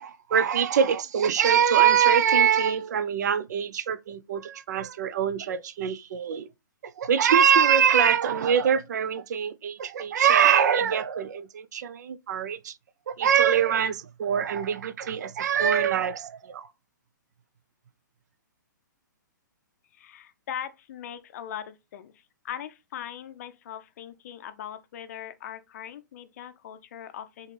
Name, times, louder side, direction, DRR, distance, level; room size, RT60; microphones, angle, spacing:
voice 1, 0.0-6.5 6.8-12.7 13.1-16.7, right 8 dB, 60° right, 0.4 m, -23 dB
voice 2, 19.9-27.5, left 10 dB, 50° left, 0.5 m, -40 dB
4.0 x 2.5 x 3.2 m
hypercardioid pair, 125°, 11 cm